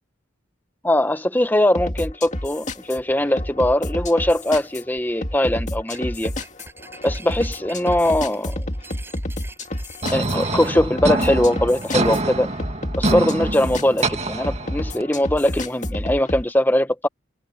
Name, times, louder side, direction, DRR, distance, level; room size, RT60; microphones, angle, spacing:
voice 1, 0.8-6.3 7.0-8.6 10.1-12.5 13.0-17.1, left 1 dB, 10° left, 0.9 m, -21 dB
sound 1, 1.7-16.4, left 1 dB, 35° left, 2.3 m, -30 dB
sound 2, 5.4-5.6 5.9-12.2, right 3 dB, 10° right, 7.4 m, -45 dB
sound 3, 10.0-15.0, right 2 dB, 35° right, 2.1 m, -25 dB
head